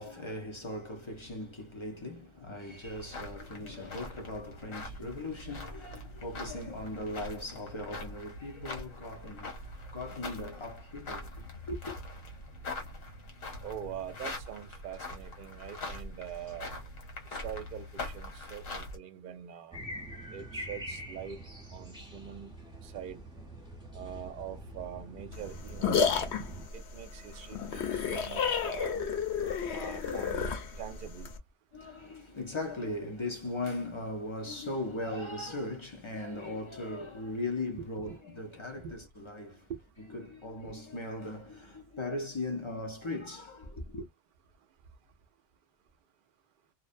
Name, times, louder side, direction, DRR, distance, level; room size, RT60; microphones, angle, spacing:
voice 1, 0.0-9.6 9.9-12.0 31.7-39.7 40.1-44.1, left 2 dB, 50° left, 0.3 m, -38 dB
sound 1, 2.8-19.0, left 2 dB, 90° left, 1.3 m, -43 dB
voice 2, 13.6-16.7 17.3-19.8 20.3-21.4 21.7-22.5 22.8-23.2 23.9-26.2 26.7-29.1 29.7-30.5 30.8-31.3 37.8-38.2 38.8-39.0 39.7-39.8 40.6-40.7, right 9 dB, 60° right, 0.6 m, -43 dB
sound 2, 19.7-26.7, equal, 5° right, 0.9 m, -44 dB
sound 3, 25.3-31.4, left 6 dB, 65° left, 0.8 m, -31 dB
2.5 x 2.0 x 2.4 m
omnidirectional pair, 1.3 m